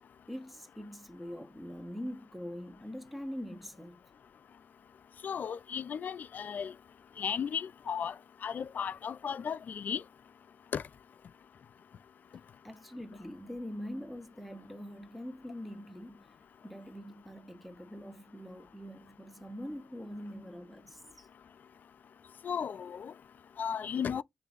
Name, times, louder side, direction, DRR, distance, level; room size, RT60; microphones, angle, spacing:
voice 1, 0.3-4.0 12.6-16.3 16.6-21.3, equal, ahead, 0.8 m, -43 dB
voice 2, 5.2-6.7 7.2-8.1 8.4-10.0 10.7-10.8 22.4-23.1 23.6-24.2, left 7 dB, 60° left, 0.4 m, -35 dB
6.5 x 2.6 x 2.4 m
cardioid pair, 90°, 3 cm